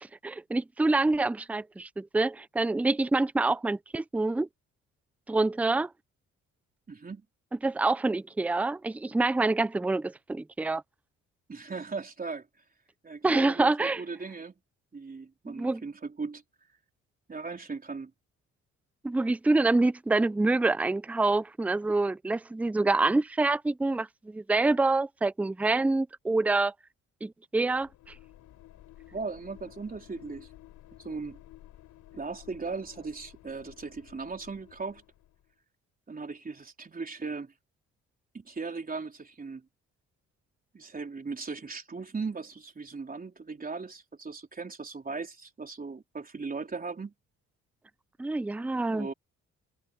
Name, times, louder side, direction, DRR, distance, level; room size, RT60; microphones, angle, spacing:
voice 1, 0.2-4.5 5.3-5.9 7.6-10.8 13.2-14.0 15.5-15.8 19.0-26.7 27.2-27.9 48.2-49.1, right 2 dB, 5° right, 0.4 m, -26 dB
voice 2, 6.9-7.2 11.5-12.5 13.0-14.5 14.9-16.4 17.3-18.1 29.1-30.5 31.0-31.4 32.1-35.0 36.1-37.5 38.3-39.7 40.7-47.1 48.9-49.1, right 4 dB, 30° right, 3.7 m, -38 dB
sound 1, 27.7-35.5, left 13 dB, 80° left, 4.0 m, -53 dB
cardioid pair, 90°, 30 cm